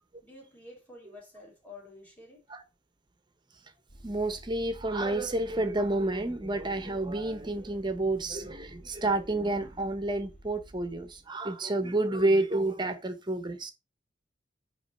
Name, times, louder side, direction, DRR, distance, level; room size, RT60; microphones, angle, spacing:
voice 1, 0.2-2.4, left 2 dB, 10° left, 3.0 m, -50 dB
Vehicle, 3.9-11.2, right 1 dB, 55° left, 2.5 m, -52 dB
voice 2, 4.0-13.7, right 2 dB, 25° right, 0.9 m, -29 dB
8.5 x 3.2 x 4.2 m
head